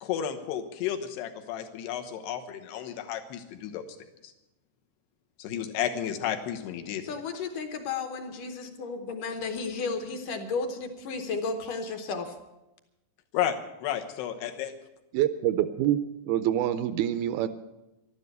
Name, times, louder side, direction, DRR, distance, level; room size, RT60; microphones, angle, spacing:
voice 1, 0.0-3.9 4.2-4.3 5.4-7.2 13.3-14.7, left 10 dB, 85° left, 5 dB, 3.2 m, -32 dB
voice 2, 7.0-12.3, left 4 dB, 65° left, 6 dB, 2.3 m, -33 dB
voice 3, 15.1-17.5, right 11 dB, 80° right, 12 dB, 2.3 m, -26 dB
12.5 x 12.0 x 8.1 m, 0.95 s
omnidirectional pair, 4.7 m